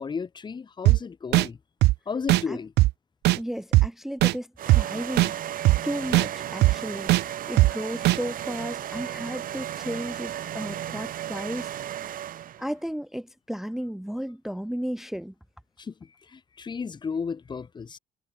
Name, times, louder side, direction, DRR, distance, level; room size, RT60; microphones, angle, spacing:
voice 1, 0.0-1.6 2.1-2.7 15.8-15.9 16.3-18.0, left 5 dB, 25° left, 2.2 m, -33 dB
sound 1, 0.9-1.0 1.3-1.5 1.8-1.9 2.3-2.4 2.8-2.9 3.3-3.4 3.7-3.9 4.2-4.3 4.7-4.8 5.2-5.3 5.7-5.8 6.1-6.3 6.6-6.7 7.1-7.2 7.6-7.7 8.1-8.2, right 18 dB, 75° right, 0.4 m, -18 dB
voice 2, 3.4-5.6 5.8-12.0 12.6-15.3, equal, ahead, 0.5 m, -34 dB
sound 2, 4.6-12.7, right 11 dB, 55° right, 4.0 m, -35 dB
cardioid pair, 145°, 18 cm